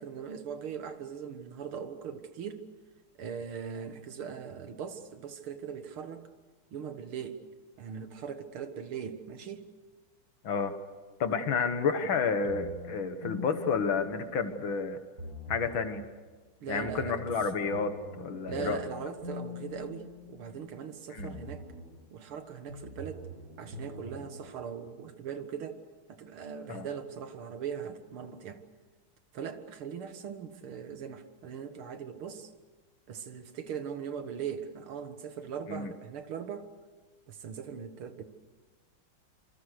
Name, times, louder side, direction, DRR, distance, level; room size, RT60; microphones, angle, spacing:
voice 1, 0.0-2.7 3.2-6.3 6.7-7.4 7.8-9.7 16.6-17.2 18.5-21.6 22.1-23.3 23.6-25.8 26.1-28.6 29.3-32.5 33.1-36.7 37.3-38.3, right 7 dB, 90° right, 9 dB, 2.4 m, -40 dB
voice 2, 10.4-10.8 11.2-15.0 15.5-16.0 16.7-18.8 21.1-21.4 26.7-26.9 35.7-35.9, left 5 dB, 70° left, 9 dB, 2.3 m, -30 dB
sound 1, 12.5-14.7 15.2-16.0 16.7-20.8 21.2-22.0 22.7-24.5, left 1 dB, 45° right, 5.8 m, -44 dB
27.0 x 25.0 x 6.6 m, 1.3 s
omnidirectional pair, 2.3 m